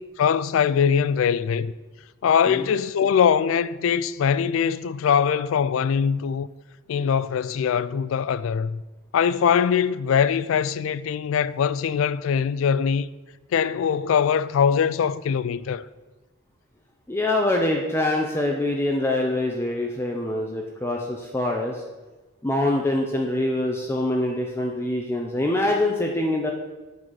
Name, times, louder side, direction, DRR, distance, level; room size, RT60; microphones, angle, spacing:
voice 1, 0.2-1.7 2.2-6.5 6.9-8.8 9.1-13.1 13.5-15.9, left 7 dB, 75° left, 0.3 m, -22 dB
voice 2, 17.1-21.8 22.4-26.5, left 1 dB, 10° left, 0.5 m, -24 dB
7.4 x 4.1 x 6.3 m
head